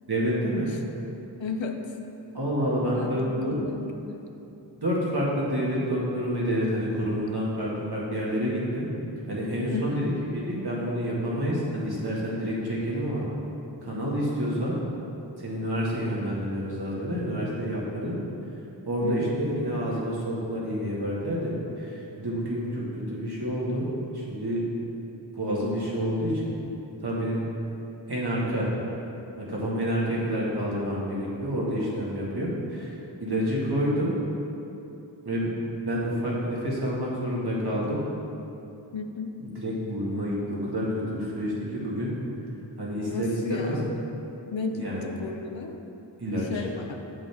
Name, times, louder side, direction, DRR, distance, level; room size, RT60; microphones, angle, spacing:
voice 1, 0.1-0.7 2.3-3.6 4.8-8.9 9.3-13.3 13.8-14.8 15.4-18.2 18.9-24.6 25.3-26.5 27.0-27.4 28.1-28.7 29.4-32.9 33.2-34.1 35.2-38.0 39.4-42.1 42.8-43.8 44.7-45.1 46.2-46.6, equal, 60° right, -6 dB, 1.9 m, -28 dB
voice 2, 1.4-2.0 2.9-4.2 9.7-10.1 19.0-19.3 19.7-19.8 38.9-39.3 43.0-43.9 44.5-45.8 46.4-47.0, left 4 dB, 85° left, 4 dB, 0.7 m, -34 dB
7.8 x 7.5 x 3.6 m, 2.9 s
wide cardioid pair, 55°, 44 cm